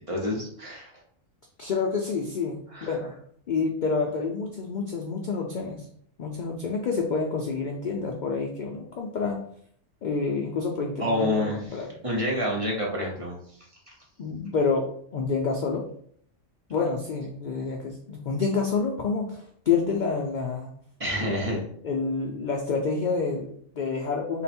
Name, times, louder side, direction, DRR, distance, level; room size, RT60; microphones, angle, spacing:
voice 1, 0.1-0.9 2.7-2.9 11.0-11.6 12.0-13.4 13.9-14.0 21.0-21.6, left 1 dB, 30° right, -2 dB, 0.7 m, -28 dB
voice 2, 1.6-3.2 3.5-5.9 6.2-9.4 10.0-11.9 14.2-15.8 16.7-20.7 21.2-21.5 21.8-24.4, left 4 dB, 75° left, 0 dB, 0.4 m, -28 dB
3.8 x 2.2 x 4.2 m, 0.64 s
omnidirectional pair, 1.4 m